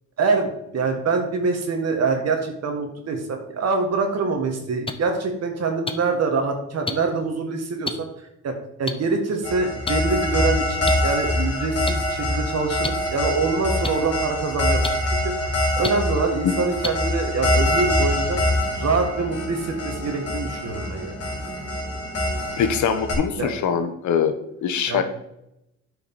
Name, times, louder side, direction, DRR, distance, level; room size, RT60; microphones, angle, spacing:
voice 1, 0.2-8.1 8.4-8.5 8.8-14.9 15.2-18.4 18.8-21.1 23.3-23.5 24.9-25.0, right 4 dB, 55° right, 4 dB, 1.9 m, -25 dB
sound 1, 4.9-5.0 5.9-6.0 6.9-7.0 7.8-7.9 8.9-9.0 9.9-10.0 10.9-11.0 11.9-12.0 12.8-12.9 13.8-13.9 14.8-14.9 15.8-15.9 16.8-16.9 17.8-17.9, left 3 dB, 20° left, 0.8 m, -27 dB
sound 2, 9.4-23.1, left 1 dB, 55° left, 3.3 m, -25 dB
sound 3, 17.4-22.6, right 3 dB, 35° right, 1.9 m, -40 dB
voice 2, 22.6-25.0, left 7 dB, 70° left, 8 dB, 1.1 m, -23 dB
9.0 x 5.3 x 4.2 m, 0.82 s
cardioid pair, 90°, 30 cm